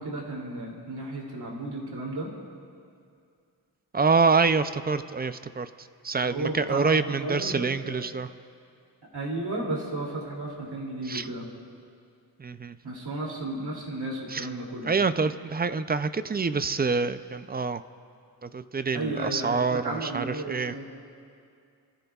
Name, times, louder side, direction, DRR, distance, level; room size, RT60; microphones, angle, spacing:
voice 1, 0.0-2.3 6.3-7.6 7.8-8.0 9.1-11.5 12.8-14.9 18.9-20.9, right 2 dB, 75° right, -2 dB, 2.7 m, -33 dB
voice 2, 3.9-5.7 6.0-8.3 11.1-11.3 12.4-12.8 14.3-14.5 14.8-17.8 18.4-20.7, right 4 dB, 25° right, 12 dB, 0.3 m, -26 dB
26.0 x 14.5 x 2.3 m, 2.3 s
wide cardioid pair, 140°, 40 cm